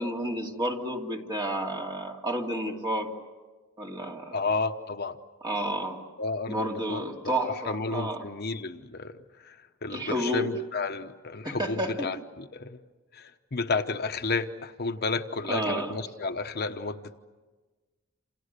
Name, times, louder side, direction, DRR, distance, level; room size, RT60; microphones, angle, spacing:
voice 1, 0.0-3.1 3.8-4.4 5.4-6.0 6.5-8.2 9.9-10.5 11.4-12.1 15.5-15.9, right 1 dB, 20° right, 0 dB, 2.6 m, -31 dB
voice 2, 4.3-5.2 6.2-7.0 7.4-12.8 13.1-17.2, left 3 dB, 50° left, 7 dB, 1.0 m, -32 dB
29.0 x 27.5 x 6.8 m, 1.3 s
head